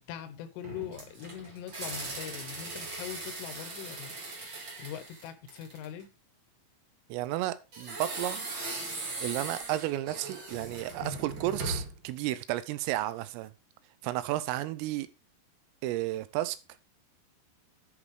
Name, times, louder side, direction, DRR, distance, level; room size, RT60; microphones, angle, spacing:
voice 1, 0.1-4.2 4.8-6.1 11.0-11.2, left 10 dB, 80° left, 3.3 m, -42 dB
sound 1, 0.6-6.0 7.7-12.1, right 2 dB, 50° right, 1.5 m, -39 dB
voice 2, 7.1-8.5 9.2-13.5 14.0-15.1 15.8-16.6, right 15 dB, 85° right, 3.3 m, -32 dB
10.5 x 5.5 x 4.7 m
omnidirectional pair, 6.0 m